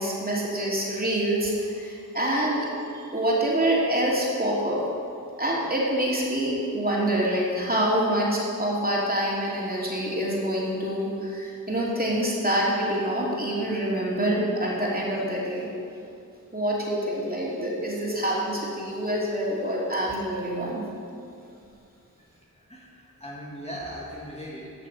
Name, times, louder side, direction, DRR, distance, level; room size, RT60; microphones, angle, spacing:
voice 1, 0.0-2.6 2.9-4.8 5.4-15.7 16.5-20.8, right 1 dB, 25° right, -5 dB, 2.8 m, -26 dB
voice 2, 22.5-24.9, equal, 20° left, -4 dB, 1.7 m, -39 dB
11.5 x 6.4 x 5.5 m, 2.5 s
cardioid pair, 40°, 33 cm